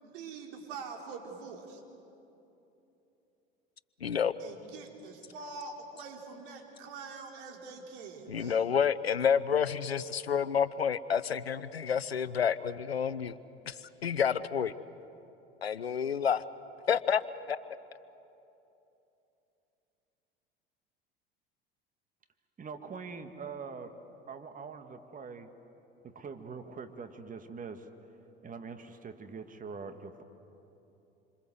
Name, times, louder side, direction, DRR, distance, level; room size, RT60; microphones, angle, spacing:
voice 1, 0.0-1.8 4.4-8.7, right 4 dB, 60° right, 2 dB, 4.2 m, -44 dB
voice 2, 4.0-4.3 8.3-13.4 13.7-13.8 14.0-14.7 15.6-16.4 16.9-17.2 17.5-17.6, left 7 dB, 90° left, 16 dB, 0.8 m, -29 dB
voice 3, 22.6-24.0 24.3-25.5 26.0-27.9 28.4-30.2, right 5 dB, 25° right, 8 dB, 2.0 m, -43 dB
27.5 x 26.5 x 7.9 m, 3.0 s
hypercardioid pair, 75°, 30 cm